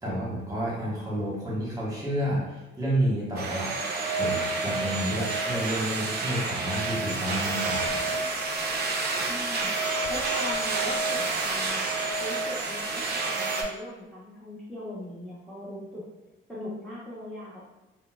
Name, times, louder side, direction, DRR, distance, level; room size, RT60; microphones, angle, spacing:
voice 1, 0.0-3.8 4.1-8.2, right 1 dB, 15° right, -6 dB, 1.1 m, -30 dB
sound 1, 3.3-13.6, right 3 dB, 55° right, 0.5 m, -29 dB
voice 2, 9.3-9.7 10.1-11.9 12.2-16.0 16.5-17.7, left 1 dB, ahead, -10 dB, 0.8 m, -40 dB
3.6 x 2.1 x 2.2 m, 1.1 s
cardioid pair, 90°, 20 cm